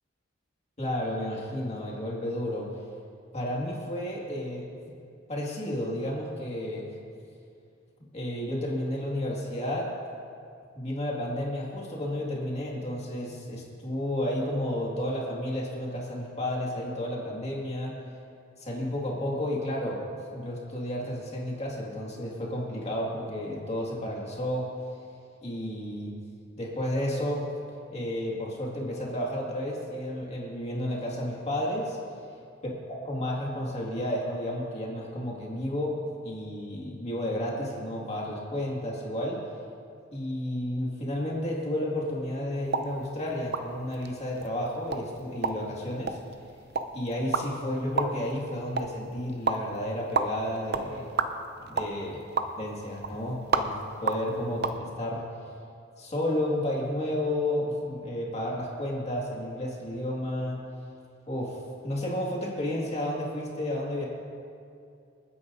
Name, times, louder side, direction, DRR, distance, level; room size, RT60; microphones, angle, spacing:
voice 1, 0.8-2.7 3.3-4.7 5.3-6.9 8.1-9.9 10.8-18.0 18.6-20.1 20.3-24.7 25.4-26.2 26.6-27.5 27.9-32.0 32.9-36.0 36.2-39.4 40.1-46.2 46.9-51.1 51.7-52.1 52.6-55.2 56.0-60.6 61.3-64.1, left 1 dB, 35° left, -3 dB, 2.0 m, -32 dB
sound 1, 42.6-54.8, right 4 dB, 55° right, 0.7 m, -33 dB
28.0 x 9.6 x 2.7 m, 2.4 s
head